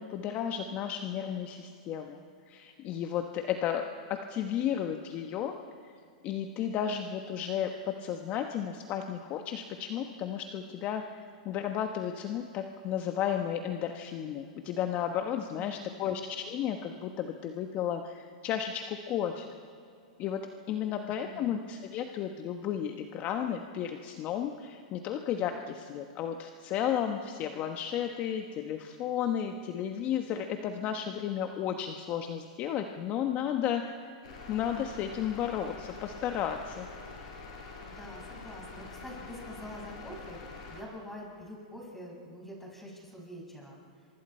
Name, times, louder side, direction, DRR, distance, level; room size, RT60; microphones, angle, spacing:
voice 1, 0.0-2.2 2.5-5.5 5.8-5.9 6.2-11.0 11.4-19.5 20.2-34.1 34.5-36.9, left 9 dB, 40° left, 5 dB, 1.2 m, -33 dB
voice 2, 15.5-16.1 20.9-21.5 37.8-43.8, equal, 5° left, -2 dB, 6.2 m, -46 dB
sound 1, 34.2-40.8, left 3 dB, 65° left, 8.0 m, -45 dB
27.5 x 24.5 x 4.5 m, 2.3 s
hypercardioid pair, 125°, 4 cm